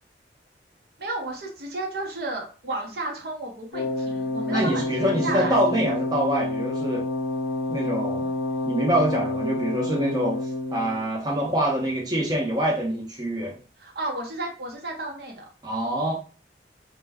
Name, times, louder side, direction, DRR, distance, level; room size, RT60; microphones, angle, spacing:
voice 1, 1.0-5.6 13.8-15.4, right 2 dB, 60° right, 0 dB, 0.8 m, -32 dB
Wind instrument woodwind instrument, 3.7-11.0, left 2 dB, 85° left, 0.5 m, -28 dB
voice 2, 4.5-7.0 7.7-8.2 8.6-10.4 10.7-13.6 15.6-16.1, right 1 dB, 20° right, -3 dB, 0.6 m, -25 dB
2.2 x 2.1 x 3.4 m, 0.37 s
head